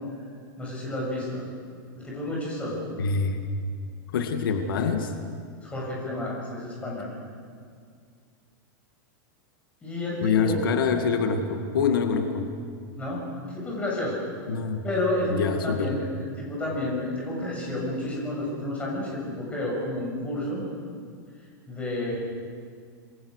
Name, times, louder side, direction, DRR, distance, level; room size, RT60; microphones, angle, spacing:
voice 1, 0.6-1.4 2.0-2.9 5.6-7.1 9.8-10.6 13.0-14.2 14.8-20.6 21.7-22.2, left 1 dB, 10° left, -3 dB, 7.2 m, -30 dB
voice 2, 3.0-3.5 4.1-5.1 10.2-12.5 14.5-14.8 15.3-16.0, left 5 dB, 90° left, 5 dB, 2.2 m, -25 dB
28.0 x 22.0 x 6.7 m, 2.1 s
supercardioid pair, 165°, 11 cm